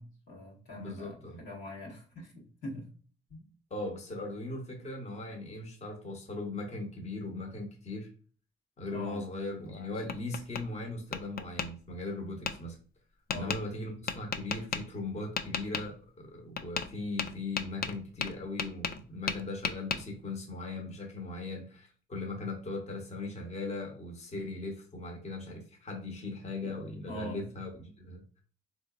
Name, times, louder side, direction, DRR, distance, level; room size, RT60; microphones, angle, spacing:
voice 1, 0.0-2.9 3.3-3.4 8.9-9.2 13.3-13.5 27.1-27.4, left 1 dB, 85° left, -4 dB, 1.5 m, -43 dB
voice 2, 0.8-1.4 3.7-8.1 8.8-12.8 13.3-28.4, left 2 dB, 35° left, 1 dB, 1.0 m, -39 dB
Tap, 9.6-10.6 11.1-11.7 12.5-12.6 13.3-13.6 14.1-14.8 15.4-15.9 16.6-16.9 17.2-19.0 19.3-20.0, left 6 dB, 50° left, 0.4 m, -34 dB
3.7 x 2.9 x 2.4 m, 0.41 s
cardioid pair, 90°, 20 cm